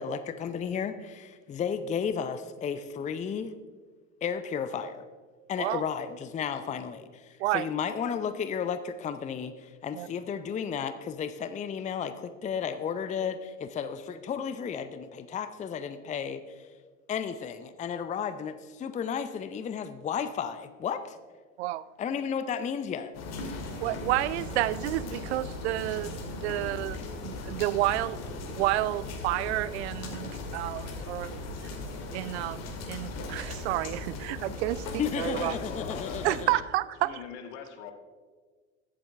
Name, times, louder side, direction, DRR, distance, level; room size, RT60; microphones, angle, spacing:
voice 1, 0.0-3.5 4.2-5.0 5.5-16.7 17.1-21.2 22.0-23.1 35.0-36.6, left 7 dB, 20° left, 0.6 m, -33 dB
sound 1, 23.1-36.5, left 2 dB, 40° left, 2.4 m, -38 dB
voice 2, 23.8-28.2 28.5-31.4 32.1-34.9 35.2-35.6 36.2-37.2, right 16 dB, 55° right, 0.5 m, -30 dB
voice 3, 35.2-36.3 37.0-37.9, left 8 dB, 60° left, 1.7 m, -42 dB
22.0 x 7.5 x 3.5 m
figure-of-eight pair, 70°, 39 cm